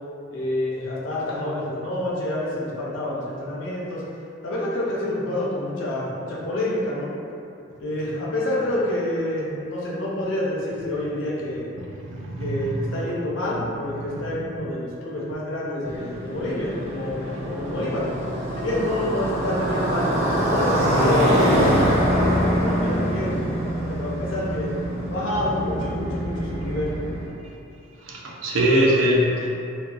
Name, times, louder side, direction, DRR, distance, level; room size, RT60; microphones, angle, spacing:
voice 1, 0.3-4.0 4.4-7.1 7.8-11.7 12.4-18.1 18.6-23.6 23.8-24.7 25.0-26.9, left 1 dB, 75° left, -5 dB, 0.5 m, -28 dB
voice 2, 12.0-12.7 14.1-14.2 28.1-29.5, equal, 80° right, -3 dB, 0.4 m, -22 dB
Motorcycle, 15.8-27.3, equal, 40° right, 0.7 m, -24 dB
2.6 x 2.1 x 2.3 m, 2.7 s
head